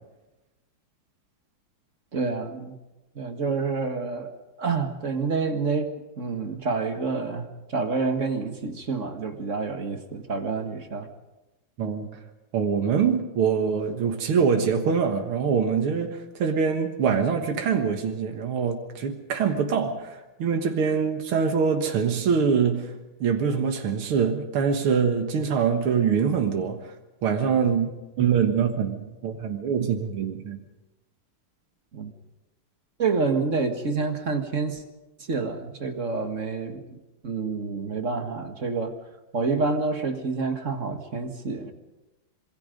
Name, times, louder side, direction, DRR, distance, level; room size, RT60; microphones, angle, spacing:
voice 1, 2.1-2.8 3.2-4.3 4.6-11.1 31.9-32.1 33.0-34.8 35.3-37.0 37.2-39.0 39.3-41.7, right 4 dB, 40° right, 6 dB, 1.9 m, -28 dB
voice 2, 12.5-22.9 23.2-26.9 27.2-27.9 28.2-30.6, right 6 dB, 85° right, 5 dB, 2.4 m, -24 dB
26.0 x 23.0 x 5.3 m, 1.0 s
omnidirectional pair, 2.3 m